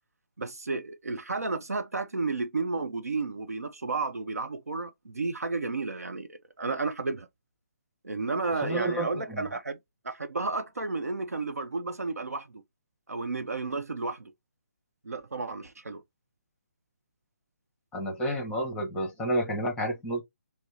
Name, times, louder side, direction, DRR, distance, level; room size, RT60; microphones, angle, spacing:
voice 1, 0.4-7.3 8.0-9.8 10.0-12.6 13.1-14.3 15.0-16.0, right 3 dB, 75° right, 0.7 m, -32 dB
voice 2, 8.6-9.4 17.9-20.2, right 1 dB, 10° left, 1.1 m, -30 dB
6.0 x 2.0 x 2.9 m
figure-of-eight pair, 145°, 8 cm